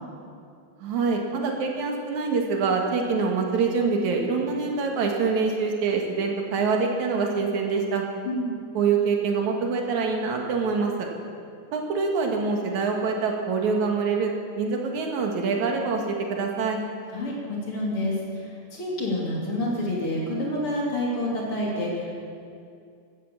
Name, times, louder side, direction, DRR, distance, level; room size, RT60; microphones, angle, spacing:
voice 1, 0.8-8.0 8.7-11.1 11.7-16.8, right 4 dB, 80° right, 2 dB, 3.0 m, -25 dB
voice 2, 8.2-8.6 17.1-22.1, left 1 dB, 45° left, -3 dB, 3.8 m, -28 dB
15.5 x 11.5 x 7.1 m, 2.4 s
omnidirectional pair, 3.3 m